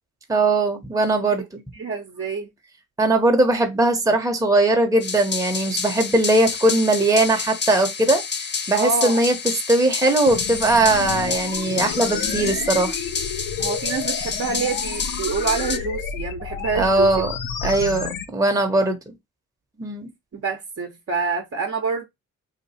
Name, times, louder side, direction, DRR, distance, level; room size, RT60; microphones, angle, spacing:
voice 1, 0.3-1.6 3.0-8.2 8.7-12.9 16.7-17.3 17.6-19.0 19.8-20.1, right 2 dB, 10° right, 0.9 m, -20 dB
voice 2, 1.7-2.5 8.8-9.2 13.6-17.3 17.6-17.7 18.0-18.1 20.3-22.1, right 4 dB, 40° right, 0.9 m, -27 dB
sound 1, 5.0-15.8, left 5 dB, 30° left, 0.6 m, -29 dB
sound 2, 10.3-18.3, left 6 dB, 75° left, 0.7 m, -30 dB
2.9 x 2.4 x 4.1 m
supercardioid pair, 60°, 34 cm